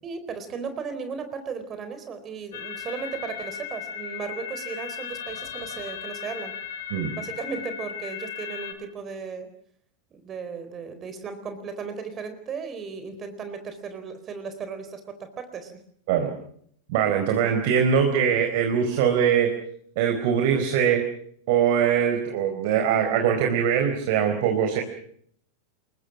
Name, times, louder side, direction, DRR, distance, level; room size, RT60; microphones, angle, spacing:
voice 1, 0.0-6.5 7.1-9.5 10.1-15.7, right 5 dB, 25° right, 9 dB, 4.2 m, -36 dB
sound 1, 2.5-8.7, left 8 dB, 55° left, 4.9 m, -36 dB
voice 2, 16.9-19.5 20.0-21.1 21.5-24.8, right 8 dB, 50° right, 4 dB, 4.2 m, -22 dB
28.5 x 22.5 x 6.2 m, 0.66 s
figure-of-eight pair, 90°, 0 cm